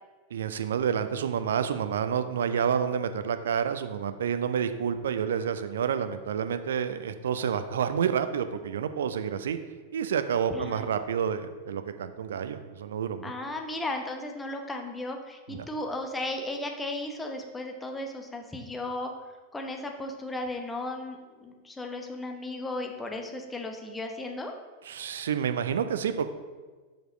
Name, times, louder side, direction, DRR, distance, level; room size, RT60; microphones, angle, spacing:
voice 1, 0.3-9.6 9.9-13.3 15.5-15.7 24.8-26.3, right 7 dB, 65° right, 10 dB, 0.5 m, -29 dB
voice 2, 10.5-10.9 13.2-19.1 19.5-24.5, left 2 dB, 10° left, 3 dB, 0.9 m, -35 dB
6.0 x 5.3 x 5.0 m, 1.4 s
figure-of-eight pair, 90°, 0 cm